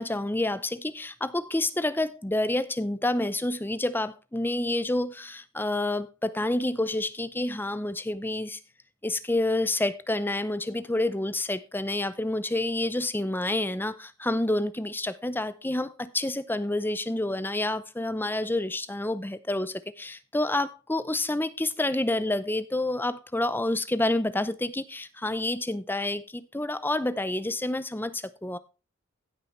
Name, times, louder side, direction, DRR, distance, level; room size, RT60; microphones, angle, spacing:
voice 1, 0.0-8.6 9.0-28.6, left 1 dB, 10° left, 0.6 m, -28 dB
16.0 x 5.5 x 4.4 m
head